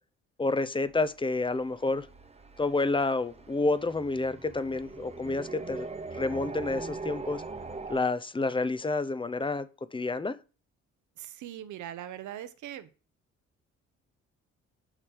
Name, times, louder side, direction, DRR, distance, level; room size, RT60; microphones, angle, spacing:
voice 1, 0.4-2.1 2.6-5.9 6.2-7.4 7.9-9.7 9.9-10.4, left 3 dB, 15° left, 0.6 m, -29 dB
sound 1, 0.9-8.0, right 3 dB, 20° right, 1.0 m, -42 dB
voice 2, 11.2-12.9, right 11 dB, 75° right, 0.9 m, -41 dB
8.9 x 3.3 x 6.2 m
cardioid pair, 90°, 30 cm